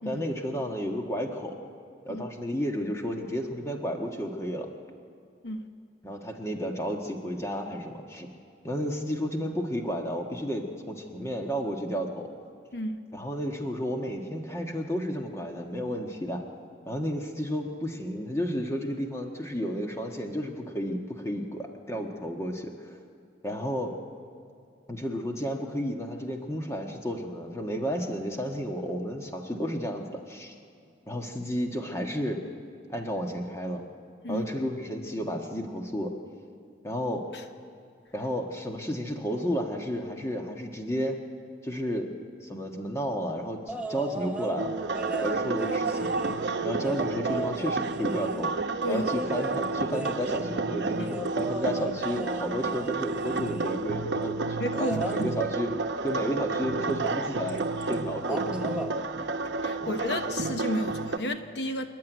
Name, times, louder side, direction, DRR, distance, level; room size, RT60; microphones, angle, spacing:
voice 1, 0.0-1.6 2.0-4.7 6.0-8.3 8.6-12.3 13.1-16.5 16.8-23.0 23.4-23.9 24.9-30.5 31.1-32.4 32.9-33.8 34.3-36.1 36.8-37.2 38.1-41.2 41.6-42.1 42.4-44.7 45.2-46.1 46.6-48.5 48.9-55.7 56.0-58.7 59.8-59.9, equal, 15° left, 3 dB, 1.4 m, -32 dB
sound 1, 43.7-44.6 44.9-48.5 49.0-53.9 54.7-55.2 57.1-57.2 57.5-57.9 58.2-58.9 60.3-60.4, right 2 dB, 5° right, 1.1 m, -36 dB
sound 2, 44.6-61.2, right 3 dB, 80° right, 0.8 m, -31 dB
voice 2, 54.6-55.3 59.0-59.3 59.6-61.9, left 1 dB, 70° left, 7 dB, 1.1 m, -32 dB
28.0 x 11.0 x 9.3 m, 2.4 s
head